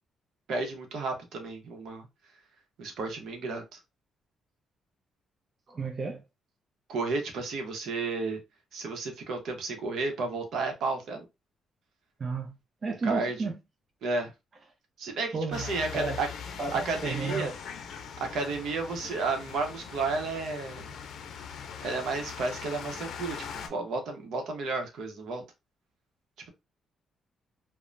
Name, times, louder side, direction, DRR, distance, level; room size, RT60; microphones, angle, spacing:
voice 1, 0.5-2.1 2.8-3.6 6.9-8.4 8.7-11.2 13.0-13.5 14.0-14.3 15.0-16.3 16.7-17.5 18.2-20.9 21.8-25.4, right 3 dB, 70° right, 0.8 m, -32 dB
voice 2, 5.7-6.2 12.2-12.5 12.8-13.6 15.3-15.7 15.9-16.2 16.6-17.5, right 4 dB, 40° right, 0.5 m, -32 dB
sound 1, 15.5-23.7, left 7 dB, 65° left, 0.5 m, -41 dB
3.1 x 2.1 x 2.5 m
cardioid pair, 90°, 0 cm